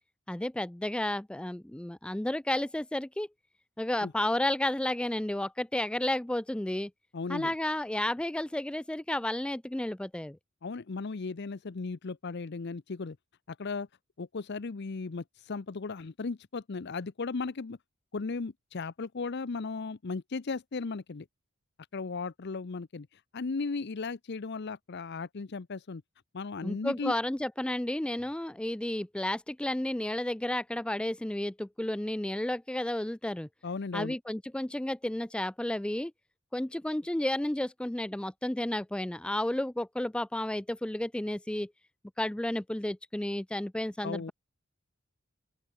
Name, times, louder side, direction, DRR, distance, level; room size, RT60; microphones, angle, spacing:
voice 1, 0.3-3.3 3.8-6.9 7.3-10.4 26.6-33.5 33.9-36.1 36.5-41.7 42.2-44.3, left 1 dB, 5° left, 0.3 m, -32 dB
voice 2, 7.1-7.5 10.6-13.2 13.5-13.9 14.2-17.8 18.1-21.3 21.9-26.0 26.3-27.1 33.6-34.2 44.0-44.3, left 4 dB, 55° left, 0.6 m, -36 dB
open air
head